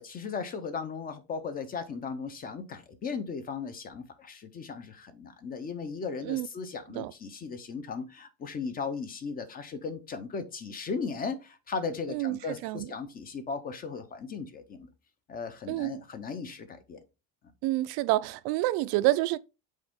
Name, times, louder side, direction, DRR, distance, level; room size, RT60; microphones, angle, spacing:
voice 1, 0.0-14.9 15.3-17.0, left 5 dB, 25° left, 0.5 m, -37 dB
voice 2, 12.1-12.9 15.7-16.0 17.6-19.4, right 17 dB, 70° right, 0.5 m, -28 dB
6.3 x 4.3 x 3.6 m
cardioid pair, 175°, 38 cm